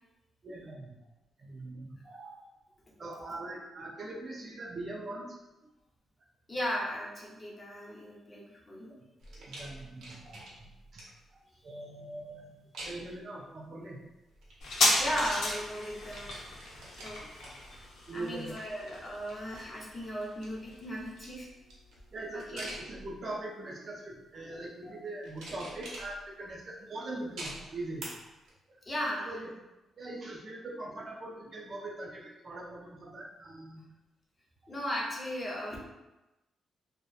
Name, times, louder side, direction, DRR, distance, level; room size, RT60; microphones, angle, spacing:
voice 1, 0.4-1.0 1.4-2.4 3.0-5.4 9.3-11.0 11.3-14.0 18.1-18.5 22.1-28.1 28.7-28.8 29.3-29.5 30.0-33.8, right 2 dB, 35° right, -2 dB, 0.3 m, -42 dB
voice 2, 6.5-8.9 15.0-16.6 17.0-17.8 18.1-21.5 22.5-22.6 28.9-29.3 34.7-35.8, equal, 20° left, -3 dB, 0.5 m, -36 dB
sound 1, 9.2-11.3 12.7-13.2 14.3-15.6 15.8-18.3 18.7-19.7 20.2-23.4 24.1-24.5 25.2-26.5 27.4-28.0 28.5-28.6, right 1 dB, 75° right, 0.6 m, -47 dB
sound 2, 14.6-21.7 22.0-22.1, left 2 dB, 80° left, 0.5 m, -34 dB
2.7 x 2.1 x 2.2 m, 1.0 s
cardioid pair, 160°, 0 cm